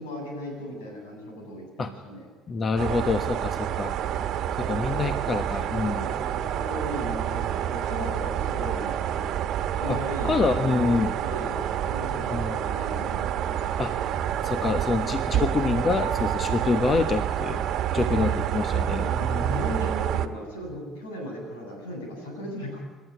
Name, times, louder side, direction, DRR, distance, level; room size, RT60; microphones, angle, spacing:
voice 1, 0.0-2.3 4.7-4.9 6.0-9.3 9.8-11.6 11.8-13.7 18.1-18.7 19.0-22.8, equal, 80° left, 1 dB, 7.9 m, -37 dB
voice 2, 2.5-3.9 4.6-6.1 9.9-10.0 10.2-11.1 12.3-12.6 13.8-13.9 14.4-17.6 17.9-19.7, left 4 dB, 40° left, 9 dB, 1.3 m, -26 dB
sound 1, 2.8-20.3, right 10 dB, 55° right, 1.3 m, -28 dB
28.5 x 13.0 x 9.6 m, 1.4 s
figure-of-eight pair, 55°, 0 cm